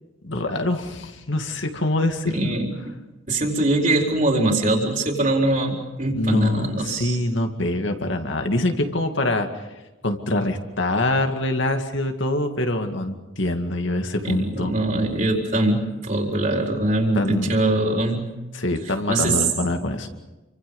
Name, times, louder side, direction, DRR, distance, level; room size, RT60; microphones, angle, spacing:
voice 1, 0.2-2.5 6.2-9.5 10.0-14.7 17.2-17.5 18.5-20.1, left 1 dB, 70° left, 5 dB, 2.2 m, -24 dB
voice 2, 2.3-2.8 3.3-7.2 14.2-18.3 19.1-19.4, right 2 dB, 40° right, 0 dB, 4.3 m, -22 dB
28.5 x 25.0 x 5.5 m, 1.1 s
head